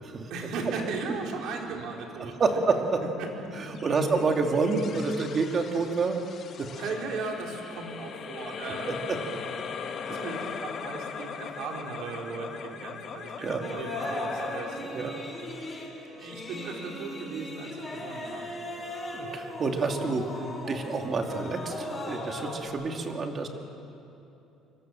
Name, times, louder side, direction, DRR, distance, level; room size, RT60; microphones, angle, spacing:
voice 1, 0.3-2.6 3.2-3.3 3.9-4.2 6.8-9.0 10.1-15.2 16.2-18.5, right 4 dB, 65° right, 0 dB, 4.4 m, -37 dB
voice 2, 2.4-2.8 3.6-6.2 6.6-6.7 10.1-10.2 13.4-13.6 14.8-15.1 19.1-20.3 20.7-23.5, right 4 dB, 30° right, 3 dB, 2.6 m, -28 dB
sound 1, 3.7-16.4, left 6 dB, 40° left, 1.8 m, -40 dB
sound 2, 13.6-22.7, left 1 dB, 15° left, 5.1 m, -38 dB
25.5 x 25.0 x 7.6 m, 2.9 s
cardioid pair, 155°, 0 cm